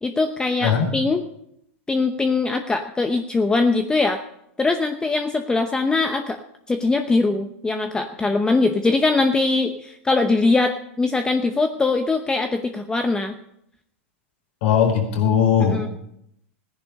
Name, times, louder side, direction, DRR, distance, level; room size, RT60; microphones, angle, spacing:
voice 1, 0.0-1.2 1.9-4.2 4.6-6.4 6.7-13.4 15.6-15.9, left 3 dB, 10° left, 7 dB, 0.8 m, -21 dB
voice 2, 14.6-15.9, left 7 dB, 65° left, 3 dB, 4.5 m, -19 dB
16.0 x 10.5 x 5.3 m, 0.76 s
hypercardioid pair, 120°, 7 cm